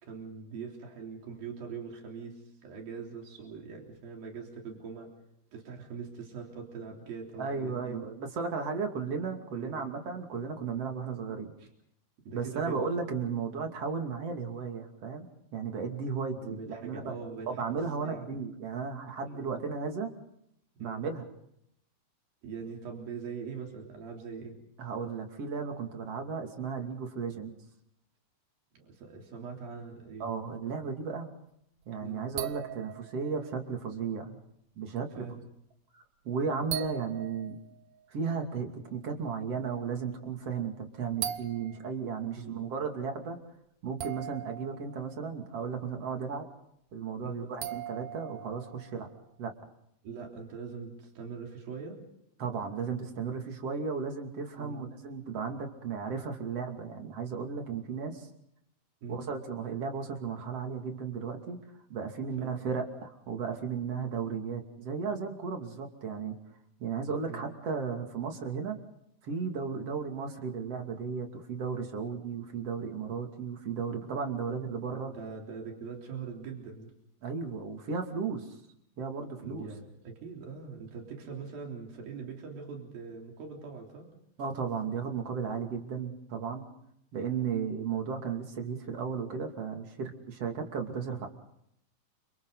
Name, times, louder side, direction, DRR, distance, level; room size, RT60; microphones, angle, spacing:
voice 1, 0.0-5.1 5.5-8.1 9.5-9.9 11.6-11.7 12.3-12.8 16.4-18.5 19.3-19.6 20.8-21.1 22.4-24.6 27.2-27.3 28.7-30.4 32.0-32.3 35.2-35.4 42.4-42.6 47.2-47.5 50.0-52.0 54.6-54.8 59.0-59.3 62.4-62.5 67.3-67.5 75.1-76.9 79.4-84.1 90.4-90.6, right 5 dB, 85° right, 1 dB, 5.4 m, -42 dB
voice 2, 7.4-11.5 12.3-17.2 17.5-20.1 20.8-21.3 24.8-27.5 30.2-31.3 31.9-34.4 34.8-35.2 35.9-37.6 38.1-43.4 43.8-46.4 46.9-49.1 49.4-49.5 52.4-58.3 59.1-61.6 61.9-66.4 66.8-68.8 69.2-75.1 77.2-78.6 79.0-79.7 84.4-86.7 87.1-91.3, right 5 dB, 45° right, 4 dB, 3.5 m, -35 dB
sound 1, 31.8-31.9 32.4-33.6 36.7-38.3 40.5-40.6 41.2-42.0 44.0-45.3 47.6-49.1, right 11 dB, 65° right, 1.8 m, -40 dB
29.5 x 27.5 x 4.0 m, 0.75 s
omnidirectional pair, 4.0 m